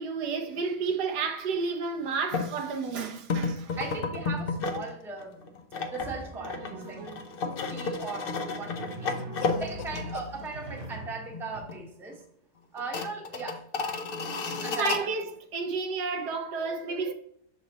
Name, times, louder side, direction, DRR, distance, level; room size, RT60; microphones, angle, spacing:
voice 1, 0.0-3.8 14.5-17.1, right 5 dB, 70° right, 1.2 m, -31 dB
sound 1, 2.3-2.5 3.3-4.9 5.2-10.5 10.8-10.9 11.3-11.9 12.1-12.2 12.8-15.0, left 4 dB, 60° left, 0.5 m, -32 dB
voice 2, 3.8-5.5 5.9-7.0 7.4-9.2 9.6-12.2 12.7-13.6 14.6-15.2, right 3 dB, ahead, 0.8 m, -39 dB
Drum, 6.0-7.5 8.5-11.6, right 2 dB, 45° right, 1.2 m, -42 dB
Cough, 6.8-7.6 9.1-10.3, left 10 dB, 85° left, 1.2 m, -43 dB
6.5 x 4.0 x 4.0 m
omnidirectional pair, 1.9 m